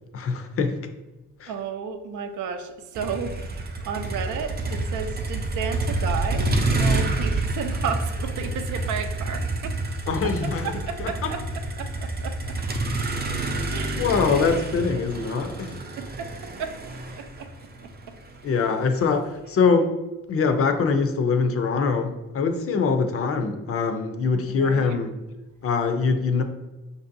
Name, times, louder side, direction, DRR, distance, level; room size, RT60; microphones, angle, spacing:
voice 1, 0.1-0.8 1.4-1.5 10.1-10.7 11.0-11.3 14.0-15.8 18.4-19.9 20.3-25.1 25.6-26.4, left 5 dB, 50° left, 7 dB, 0.5 m, -23 dB
voice 2, 1.5-12.6 13.7-14.0 14.3-14.4 16.0-17.5 17.8-18.2 24.5-25.0, right 6 dB, 75° right, 7 dB, 0.5 m, -33 dB
Motor vehicle (road), 2.9-19.1, right 2 dB, 35° right, 0.6 m, -28 dB
4.9 x 2.6 x 2.6 m, 1.1 s
cardioid pair, 90°, 30 cm